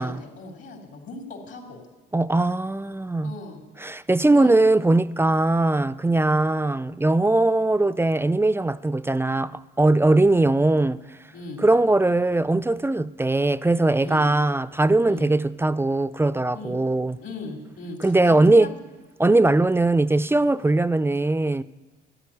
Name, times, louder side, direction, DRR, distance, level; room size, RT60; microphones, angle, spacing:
voice 1, 0.0-1.8 3.2-3.6 4.3-4.5 10.0-10.3 11.3-11.6 14.0-14.3 15.1-15.3 16.5-16.8 17.2-18.7, left 3 dB, 70° left, 3.3 m, -38 dB
voice 2, 2.1-3.3 3.8-11.0 11.6-17.2 18.0-18.7 19.2-21.6, right 2 dB, 10° right, 0.4 m, -20 dB
13.0 x 11.0 x 9.8 m
cardioid pair, 90°, 20 cm